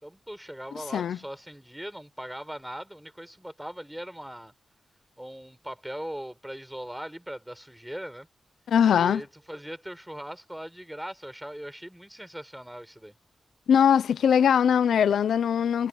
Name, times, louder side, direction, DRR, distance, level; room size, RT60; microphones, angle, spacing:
voice 1, 0.0-4.5 5.2-8.3 8.9-13.1, equal, 5° right, 6.4 m, -40 dB
voice 2, 8.7-9.2 13.7-15.9, left 8 dB, 85° left, 0.7 m, -21 dB
cardioid pair, 55°, 0 cm